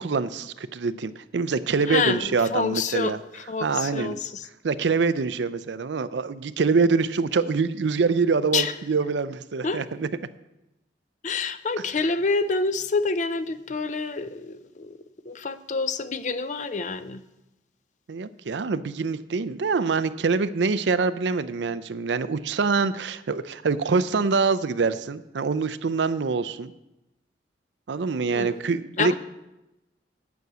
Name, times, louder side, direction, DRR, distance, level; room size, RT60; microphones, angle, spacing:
voice 1, 0.0-3.2 3.6-4.2 4.6-10.1 18.1-26.7 27.9-29.1, right 4 dB, 75° right, 14 dB, 0.5 m, -25 dB
voice 2, 1.9-4.5 8.5-8.7 9.6-9.8 11.2-15.0 15.3-17.2 28.3-28.6 29.0-29.1, left 4 dB, 40° left, 12 dB, 0.5 m, -27 dB
9.4 x 6.2 x 8.0 m, 0.95 s
head